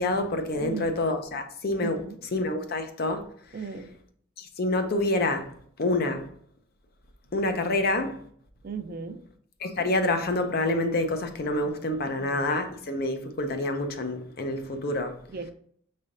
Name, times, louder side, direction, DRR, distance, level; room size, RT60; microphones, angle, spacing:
voice 1, 0.0-3.2 4.4-5.5 5.8-6.3 7.3-8.2 9.6-15.2, left 2 dB, 50° left, 0.6 m, -27 dB
voice 2, 1.8-2.2 3.5-3.9 8.6-9.2 12.2-12.4 15.3-15.5, right 4 dB, 45° right, 0.4 m, -36 dB
5.4 x 3.3 x 2.5 m
head